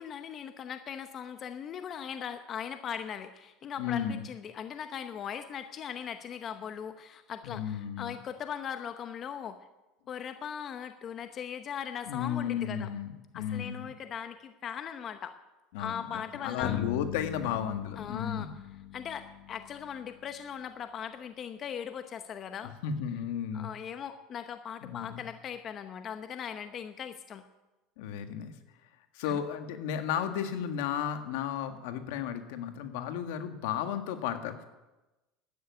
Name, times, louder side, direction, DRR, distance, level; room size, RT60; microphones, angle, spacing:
voice 1, 0.0-9.6 10.1-12.9 13.3-15.3 15.8-16.8 18.0-18.5 18.9-22.7 23.5-27.5 29.2-29.4, left 8 dB, 40° left, 9 dB, 0.9 m, -39 dB
voice 2, 3.8-4.3 7.4-8.2 12.1-13.9 15.7-18.5 22.8-23.7 24.8-25.2 28.0-28.5 29.1-34.6, left 9 dB, 80° left, 7 dB, 1.7 m, -34 dB
Bass guitar, 16.6-20.4, left 12 dB, 60° left, 3.0 m, -39 dB
12.5 x 9.5 x 9.4 m, 1.1 s
supercardioid pair, 115°, 0 cm